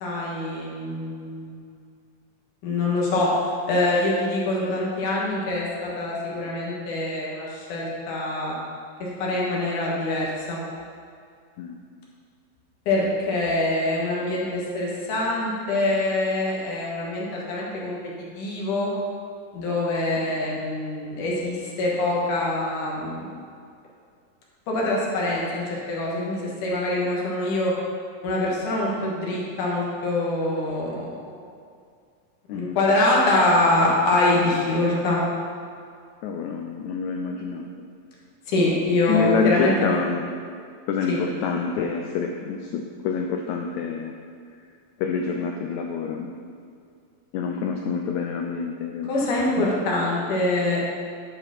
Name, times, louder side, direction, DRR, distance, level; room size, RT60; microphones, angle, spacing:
voice 1, 0.0-1.7 2.6-3.3 3.7-8.6 9.0-10.6 12.9-18.0 18.4-18.9 19.5-23.3 24.7-27.7 28.2-31.5 32.5-35.2 38.5-40.0 41.1-41.2 49.0-50.8, left 2 dB, 70° left, -4 dB, 2.9 m, -24 dB
voice 2, 36.2-37.7 39.1-40.4 40.9-44.1 45.0-46.3 47.3-49.1 49.6-49.7, left 5 dB, 85° left, 3 dB, 1.6 m, -27 dB
10.5 x 5.0 x 5.8 m, 2.3 s
omnidirectional pair, 3.9 m